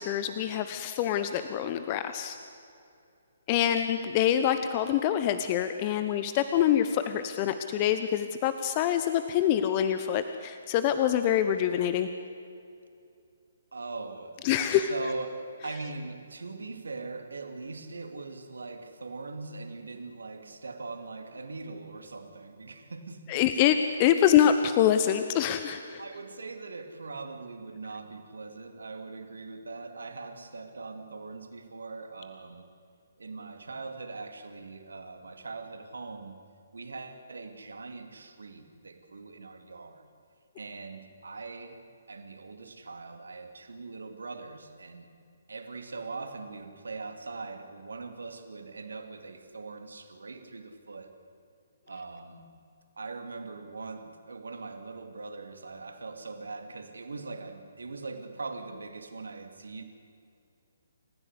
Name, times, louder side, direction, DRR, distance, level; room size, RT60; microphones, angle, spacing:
voice 1, 0.0-2.4 3.5-12.1 14.4-14.9 23.3-26.0, left 10 dB, 30° left, 10 dB, 1.1 m, -25 dB
voice 2, 13.7-23.4 26.0-32.6 33.2-36.4 36.7-40.0 40.6-41.8 42.1-45.1 45.5-51.1 51.9-52.5 53.0-59.8, right 3 dB, 70° right, 7 dB, 2.9 m, -41 dB
29.0 x 15.5 x 8.3 m, 2.5 s
figure-of-eight pair, 135°, 0 cm